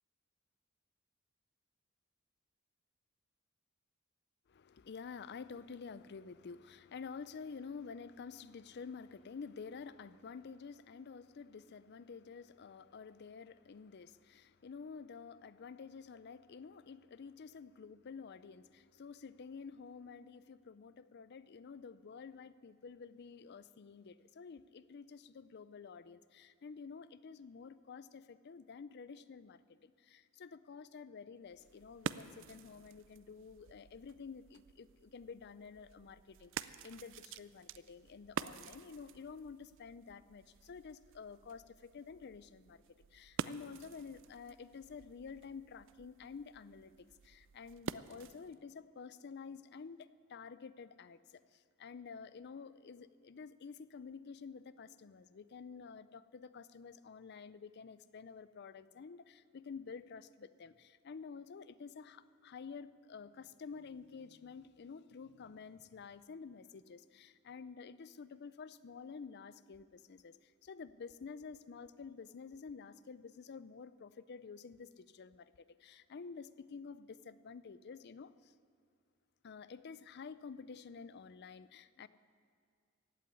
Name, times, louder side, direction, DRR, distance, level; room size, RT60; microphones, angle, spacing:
voice 1, 4.5-42.8 43.1-46.9 47.2-51.2 51.8-78.3 79.4-82.1, left 5 dB, 50° left, 15 dB, 0.4 m, -50 dB
sound 1, 31.4-48.6, right 7 dB, 60° right, 0.4 m, -48 dB
15.5 x 8.6 x 9.8 m, 2.2 s
head